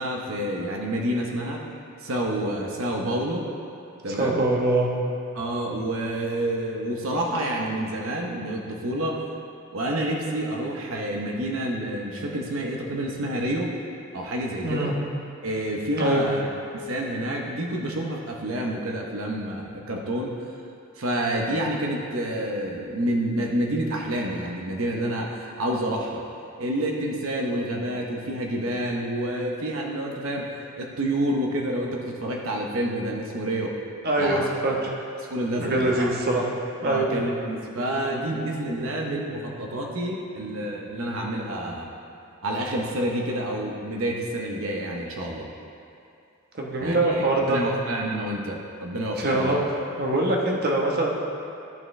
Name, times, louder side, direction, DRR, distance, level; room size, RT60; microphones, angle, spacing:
voice 1, 0.0-1.6 2.0-3.5 4.0-4.5 5.3-9.2 9.7-13.8 14.1-14.9 15.4-16.4 16.7-20.5 21.0-26.2 26.6-30.5 30.8-33.8 34.2-34.4 34.7-34.8 35.3-36.1 36.8-41.9 42.4-45.5 46.8-49.7, right 1 dB, 70° right, -1 dB, 0.9 m, -28 dB
voice 2, 4.2-4.9 14.6-15.0 16.0-16.3 34.0-34.9 35.6-36.4 36.8-37.1 46.5-47.6 49.2-49.7 50.0-51.1, right 1 dB, 45° right, -1 dB, 1.1 m, -23 dB
13.5 x 5.6 x 3.2 m, 2.6 s
head